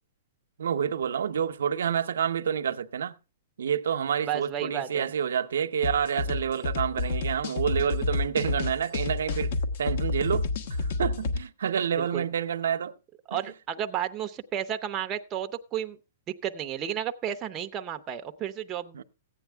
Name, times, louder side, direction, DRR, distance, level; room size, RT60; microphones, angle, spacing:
voice 1, 0.6-3.1 3.6-9.5 9.8-12.9 13.3-13.4 18.9-19.0, right 8 dB, 85° right, 0.7 m, -28 dB
voice 2, 4.2-5.1 12.0-12.2 13.3-16.0 16.4-19.0, right 10 dB, 20° right, 0.7 m, -32 dB
sound 1, 5.8-11.4, left 3 dB, 55° left, 1.2 m, -29 dB
15.0 x 9.2 x 3.4 m
hypercardioid pair, 160°, 0 cm